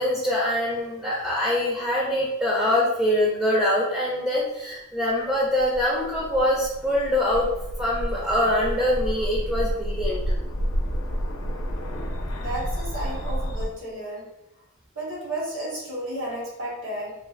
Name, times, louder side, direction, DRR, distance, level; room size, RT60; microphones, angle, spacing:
voice 1, 0.0-7.5 7.8-10.2, left 1 dB, 5° right, -4 dB, 0.4 m, -24 dB
sound 1, 5.3-13.6, equal, 85° left, 0.4 m, -30 dB
voice 2, 12.3-14.2 14.9-17.1, right 1 dB, 70° right, -5 dB, 1.2 m, -32 dB
3.1 x 2.2 x 2.4 m, 0.92 s
head